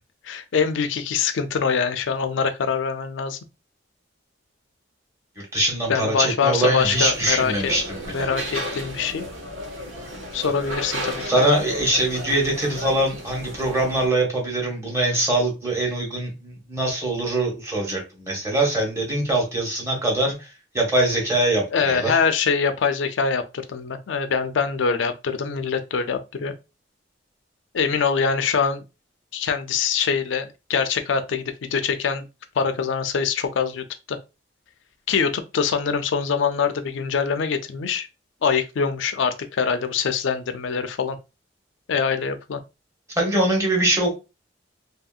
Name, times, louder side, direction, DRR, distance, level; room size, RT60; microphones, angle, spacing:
voice 1, 0.2-3.4 5.9-7.7 8.1-9.3 10.3-11.3 21.7-26.5 27.7-28.8 29.3-32.2 32.6-34.2 35.1-38.1 38.4-41.2 41.9-42.6, left 6 dB, 75° left, 0.4 m, -24 dB
voice 2, 5.4-8.3 11.2-20.5 20.7-22.2 43.2-44.2, right 1 dB, 15° right, 1.0 m, -23 dB
sound 1, 6.8-14.1, equal, 85° right, 0.9 m, -34 dB
2.8 x 2.7 x 2.3 m
head